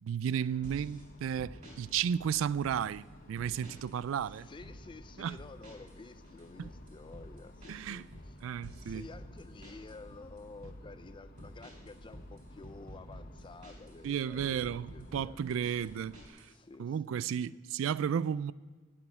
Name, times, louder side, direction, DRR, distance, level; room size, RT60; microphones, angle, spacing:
voice 1, 0.0-4.5 5.2-5.4 6.6-6.7 7.7-8.1 8.4-9.0 14.0-16.5 16.8-18.5, right 8 dB, 75° right, 0.3 m, -33 dB
sound 1, 0.5-16.3, left 1 dB, 50° left, 1.0 m, -54 dB
sound 2, 0.6-1.0 1.4-1.8 2.4-3.0 3.4-4.0 4.3-4.8 5.4-6.0 6.2-10.0 10.4-10.8 11.4-14.0 14.4-16.5, equal, 40° right, 3.8 m, -50 dB
voice 2, 4.3-8.4 8.8-15.6 16.5-17.6, left 3 dB, 25° left, 0.4 m, -51 dB
9.1 x 8.6 x 9.7 m
head